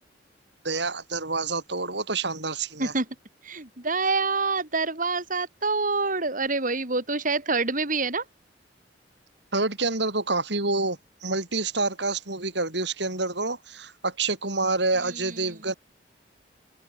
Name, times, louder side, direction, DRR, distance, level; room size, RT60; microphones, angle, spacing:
voice 1, 0.6-2.9 9.5-15.7, right 3 dB, 65° right, 5.7 m, -28 dB
voice 2, 3.4-8.2 15.2-15.3, right 3 dB, 45° right, 5.4 m, -26 dB
open air
head